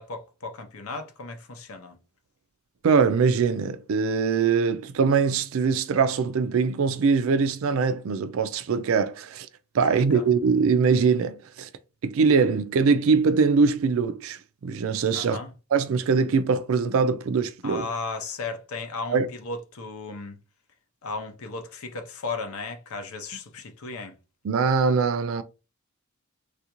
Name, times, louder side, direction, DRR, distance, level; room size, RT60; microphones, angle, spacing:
voice 1, 0.0-2.0 10.0-10.3 15.1-15.5 17.6-20.4 21.0-24.1, left 3 dB, 80° left, 0.6 m, -35 dB
voice 2, 2.8-9.5 9.7-11.7 12.0-15.4 15.7-17.9 19.1-19.3 24.4-25.4, right 5 dB, 65° right, 0.4 m, -22 dB
3.3 x 2.4 x 2.9 m
head